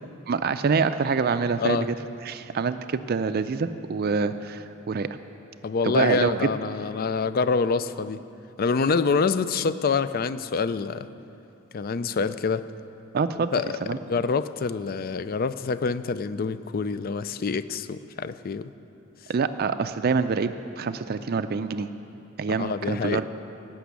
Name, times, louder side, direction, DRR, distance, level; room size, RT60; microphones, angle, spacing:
voice 1, 0.3-1.9 2.2-5.1 5.8-6.5 13.1-13.5 13.8-14.0 19.3-21.9 22.4-23.2, right 5 dB, 50° right, 11 dB, 0.4 m, -26 dB
voice 2, 5.6-8.2 8.6-11.1 11.7-12.6 13.5-13.7 14.1-18.7 22.6-23.2, left 5 dB, 45° left, 14 dB, 0.4 m, -26 dB
17.5 x 6.1 x 8.2 m, 3.0 s
head